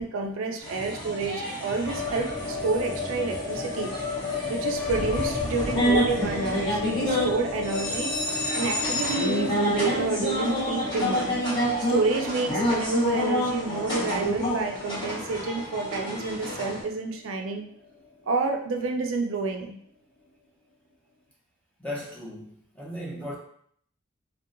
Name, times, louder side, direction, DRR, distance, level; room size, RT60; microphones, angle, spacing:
voice 1, 0.0-3.9 4.5-8.1 8.6-11.4 11.9-17.7 18.3-19.8, right 3 dB, 85° right, 3 dB, 0.4 m, -29 dB
sound 1, 0.6-16.8, equal, 25° left, 1.1 m, -29 dB
sound 2, 1.8-18.0 18.2-18.3 18.6-19.3, left 3 dB, 60° left, 0.8 m, -34 dB
voice 2, 21.8-23.3, left 1 dB, 5° left, -5 dB, 0.5 m, -37 dB
2.7 x 2.2 x 2.4 m, 0.64 s
head